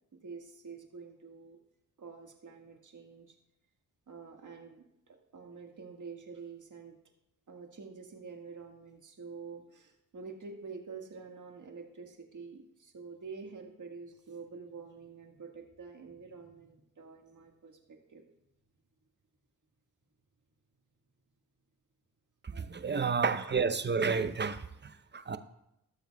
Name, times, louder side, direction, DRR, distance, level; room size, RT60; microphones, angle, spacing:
voice 1, 0.1-1.6 2.0-3.4 4.1-7.0 7.5-18.2, right 5 dB, 60° right, 2 dB, 1.7 m, -47 dB
voice 2, 22.4-25.4, right 5 dB, 30° right, 10 dB, 0.7 m, -31 dB
17.0 x 7.0 x 2.3 m, 0.83 s
cardioid pair, 55°, 35 cm